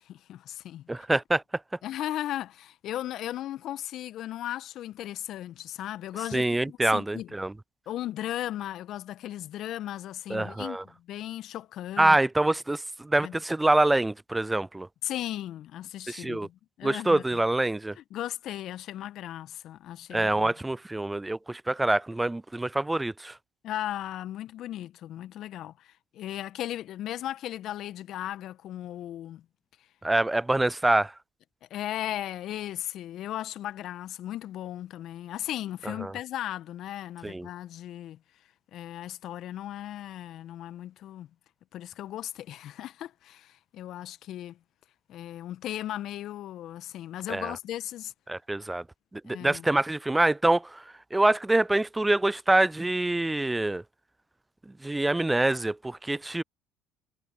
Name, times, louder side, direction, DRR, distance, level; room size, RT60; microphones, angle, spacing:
voice 1, 0.0-0.9 1.8-7.3 7.9-12.2 13.2-13.4 15.0-17.4 18.0-20.5 23.6-29.4 31.7-38.2 38.7-41.3 41.7-44.6 45.1-48.1 49.2-49.7, left 12 dB, 60° left, 1.6 m, -36 dB
voice 2, 0.9-1.4 6.3-7.5 10.3-10.8 12.0-14.9 16.1-16.5 16.8-18.0 20.1-23.4 30.0-31.1 35.9-36.1 37.2-37.5 47.3-47.5 48.3-48.8 49.1-50.8 51.1-53.8 54.7-56.4, right 2 dB, 10° right, 0.4 m, -25 dB
hypercardioid pair, 60°, 0 cm